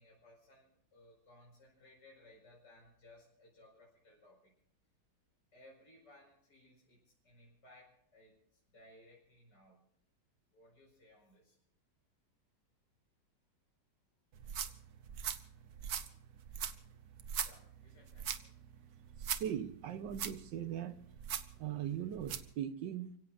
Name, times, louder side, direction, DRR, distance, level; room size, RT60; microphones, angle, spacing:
voice 1, 0.0-4.5 5.5-7.0 7.2-9.8 10.5-11.6 15.4-15.5 17.4-18.6, left 1 dB, 65° left, 6.0 m, -62 dB
sound 1, 14.3-22.5, right 8 dB, 60° right, 1.4 m, -42 dB
voice 2, 19.2-21.1 21.6-23.2, right 9 dB, 80° right, 1.7 m, -40 dB
29.5 x 17.0 x 2.6 m
omnidirectional pair, 2.0 m